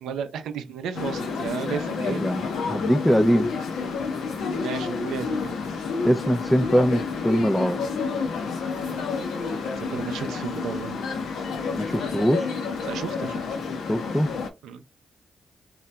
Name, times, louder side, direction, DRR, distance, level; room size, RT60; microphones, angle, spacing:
voice 1, 0.0-2.2 4.6-5.6 9.8-11.0 12.8-13.4 14.6-14.8, right 7 dB, 85° right, 0.4 m, -33 dB
sound 1, 0.9-14.5, left 5 dB, 80° left, 0.6 m, -29 dB
voice 2, 2.1-2.4 2.7-3.5 6.0-7.8 11.8-12.5 13.9-14.3, equal, 5° left, 0.3 m, -22 dB
2.7 x 2.2 x 3.2 m
supercardioid pair, 50°, 0 cm